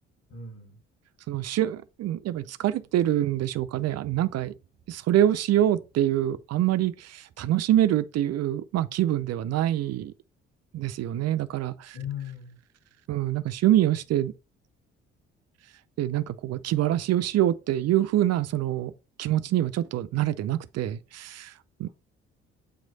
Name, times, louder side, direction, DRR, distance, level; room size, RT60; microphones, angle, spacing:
voice 1, 0.3-0.8 11.9-12.6, left 8 dB, 60° left, 3.9 m, -37 dB
voice 2, 1.3-4.5 4.9-10.1 10.7-12.0 13.1-14.3 16.0-18.9 19.2-21.5 21.8-21.9, right 12 dB, 55° right, 0.5 m, -25 dB
8.3 x 3.1 x 3.9 m
hypercardioid pair, 50°, 31 cm